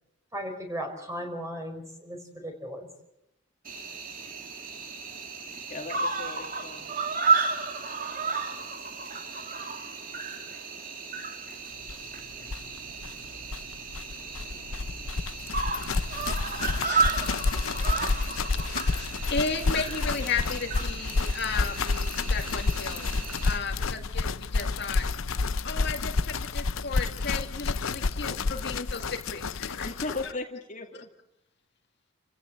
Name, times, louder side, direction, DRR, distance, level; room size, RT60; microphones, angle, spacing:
voice 1, 0.3-2.9, equal, 15° right, 4 dB, 5.1 m, -36 dB
Cricket, 3.7-23.6, right 4 dB, 45° right, 2.2 m, -33 dB
voice 2, 5.7-6.9 29.8-31.1, left 2 dB, 40° left, 2 dB, 2.4 m, -37 dB
sound 1, 11.9-12.0 12.2-12.3 12.4-30.3, left 3 dB, 90° left, 0.7 m, -30 dB
voice 3, 18.7-23.1 23.4-25.1 25.6-29.9 30.2-30.3, left 5 dB, 55° left, 4 dB, 2.1 m, -34 dB
29.0 x 16.0 x 7.9 m, 0.89 s
head